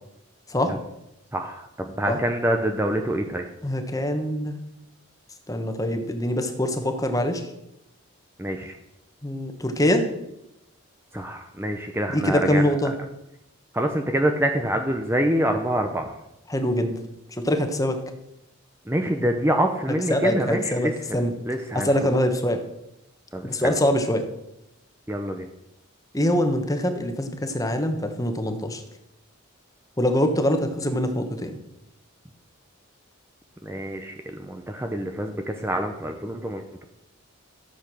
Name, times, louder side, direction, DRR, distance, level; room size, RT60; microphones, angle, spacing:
voice 1, 1.3-3.5 8.4-8.8 11.1-12.6 13.7-16.1 18.9-22.1 23.3-23.8 25.1-25.5 33.6-36.8, right 1 dB, 10° right, 4 dB, 0.8 m, -26 dB
voice 2, 3.6-4.6 5.5-7.5 9.2-10.1 12.1-12.9 16.5-17.0 17.3-18.0 20.1-21.3 21.7-22.6 23.4-24.3 26.1-28.8 30.0-31.6, left 1 dB, 15° left, 6 dB, 1.3 m, -24 dB
13.5 x 8.2 x 6.3 m, 0.86 s
head